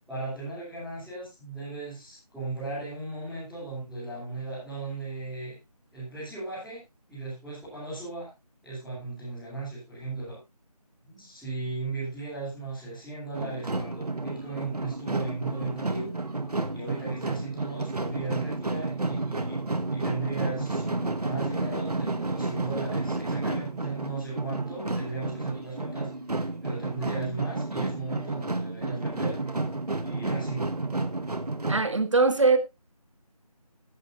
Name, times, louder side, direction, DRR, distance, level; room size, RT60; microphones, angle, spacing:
voice 1, 0.1-5.6 5.9-6.8 7.1-8.3 8.6-10.4 11.0-16.1 16.7-26.1 26.3-29.6 30.0-30.7, right 3 dB, ahead, -16 dB, 3.3 m, -37 dB
sound 1, 13.3-31.8, right 2 dB, 75° right, 1.8 m, -31 dB
voice 2, 31.7-32.6, right 3 dB, 50° right, 9 dB, 1.9 m, -21 dB
15.5 x 11.5 x 2.6 m, 0.24 s
figure-of-eight pair, 170°, 20 cm